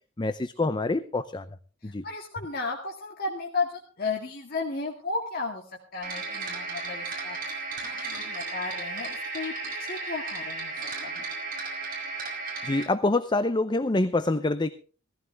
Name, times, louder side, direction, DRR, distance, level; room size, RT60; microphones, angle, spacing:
voice 1, 0.2-1.5 1.8-2.0 12.6-14.7, left 2 dB, 25° left, 12 dB, 0.6 m, -26 dB
voice 2, 1.8-10.7 11.0-11.2, left 3 dB, 50° left, -1 dB, 2.1 m, -34 dB
sound 1, 6.0-12.8, right 3 dB, 45° right, 5.6 m, -34 dB
17.0 x 15.0 x 3.4 m, 0.38 s
head